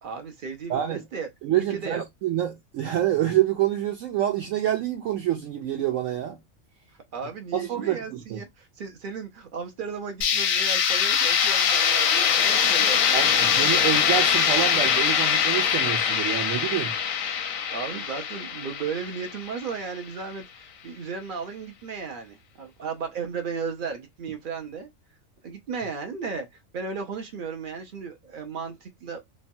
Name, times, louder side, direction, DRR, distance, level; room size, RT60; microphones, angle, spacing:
voice 1, 0.0-1.3 1.5-2.0 7.1-13.5 13.8-13.9 17.7-24.9 25.4-29.2, right 5 dB, 60° right, 0.5 m, -35 dB
voice 2, 0.7-1.0 1.4-6.4 7.5-8.4 13.1-16.9, right 11 dB, 75° right, 1.0 m, -27 dB
sound 1, 10.2-20.0, left 7 dB, 85° left, 1.0 m, -23 dB
3.0 x 2.1 x 2.6 m
omnidirectional pair, 1.4 m